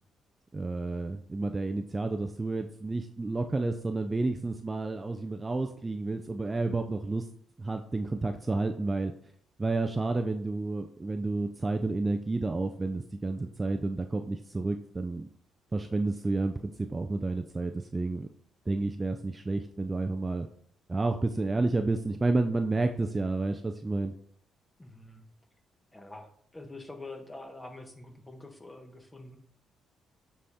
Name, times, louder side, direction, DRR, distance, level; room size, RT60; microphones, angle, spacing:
voice 1, 0.5-7.2 7.6-9.1 9.6-15.3 15.7-18.3 18.7-20.5 20.9-24.1, right 2 dB, 20° right, 6 dB, 0.4 m, -30 dB
voice 2, 24.8-25.2 25.9-29.4, left 2 dB, 15° left, 5 dB, 1.2 m, -46 dB
7.5 x 4.2 x 3.6 m, 0.62 s
cardioid pair, 90°, 0 cm